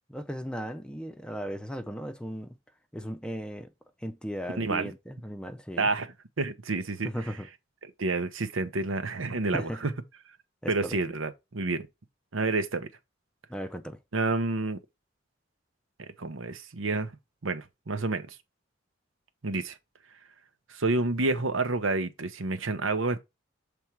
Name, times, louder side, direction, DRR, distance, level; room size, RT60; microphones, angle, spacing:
voice 1, 0.1-2.5 2.9-3.7 4.0-5.9 7.0-7.5 9.5-9.8 10.6-11.0 13.5-14.0, equal, 5° left, 0.5 m, -36 dB
voice 2, 4.6-4.9 5.8-7.1 8.0-9.9 10.7-11.9 12.3-12.9 14.1-14.8 16.0-17.1 17.4-18.4 19.4-19.8 20.7-23.2, right 3 dB, 90° right, 0.9 m, -29 dB
7.2 x 3.4 x 4.5 m
head